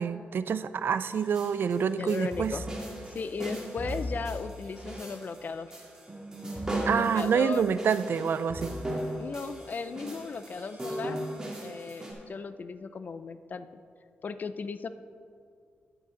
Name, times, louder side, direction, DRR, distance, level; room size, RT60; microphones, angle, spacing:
voice 1, 0.0-2.6 6.9-8.8, right 7 dB, 65° right, 14 dB, 0.4 m, -27 dB
sound 1, 1.1-12.1, right 1 dB, 15° right, 2.4 m, -37 dB
voice 2, 2.0-2.7 3.1-5.7 6.9-7.8 9.2-11.2 11.6-13.8 14.2-14.9, left 5 dB, 45° left, 12 dB, 0.4 m, -36 dB
10.0 x 9.2 x 3.8 m, 2.3 s
cardioid pair, 100°, 4 cm